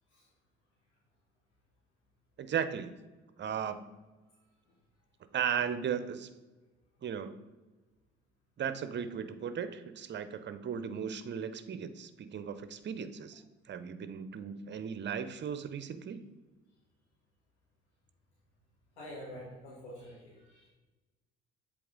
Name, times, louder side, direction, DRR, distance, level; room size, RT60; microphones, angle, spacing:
voice 1, 2.4-2.9 3.4-3.9 5.3-6.3 7.0-7.4 8.6-16.2, right 8 dB, 35° right, 12 dB, 0.6 m, -36 dB
voice 2, 19.0-20.7, equal, 85° left, -7 dB, 1.5 m, -47 dB
7.7 x 3.5 x 3.7 m, 1.2 s
hypercardioid pair, 55°, 33 cm